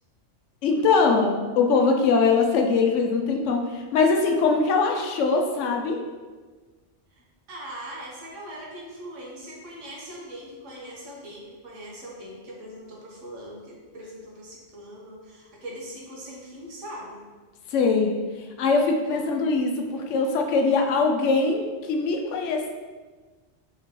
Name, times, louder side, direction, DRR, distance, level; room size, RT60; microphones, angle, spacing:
voice 1, 0.6-6.0 17.7-18.1 18.6-22.7, left 4 dB, 85° left, 3 dB, 0.9 m, -22 dB
voice 2, 7.5-17.2 19.0-19.5, equal, 90° right, -3 dB, 1.3 m, -41 dB
3.6 x 3.6 x 2.9 m, 1.4 s
omnidirectional pair, 1.2 m